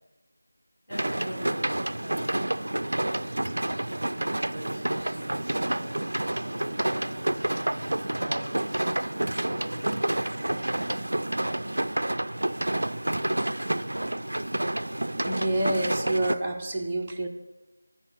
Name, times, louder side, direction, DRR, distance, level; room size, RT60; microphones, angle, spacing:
voice 1, 0.9-1.6 2.0-3.8 4.5-9.1 9.5-10.0 12.4-12.6, equal, 10° left, -9 dB, 3.6 m, -43 dB
sound 1, 0.9-16.4, right 1 dB, 60° right, 0.3 m, -29 dB
voice 2, 15.3-17.3, right 1 dB, 15° right, -1 dB, 0.6 m, -28 dB
9.6 x 4.6 x 6.4 m, 1.1 s
figure-of-eight pair, 170°, 0 cm